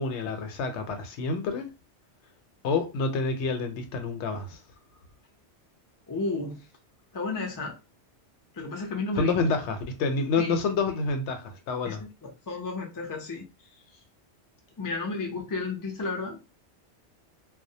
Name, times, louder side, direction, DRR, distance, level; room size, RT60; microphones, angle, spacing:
voice 1, 0.0-1.7 2.6-4.6 9.2-12.0, left 4 dB, 80° left, 0.9 m, -28 dB
voice 2, 6.1-6.7 7.1-7.7 8.5-9.5 10.4-10.6 11.8-13.5 14.8-16.5, left 3 dB, 30° left, 0.3 m, -33 dB
2.3 x 2.0 x 2.7 m
omnidirectional pair, 1.2 m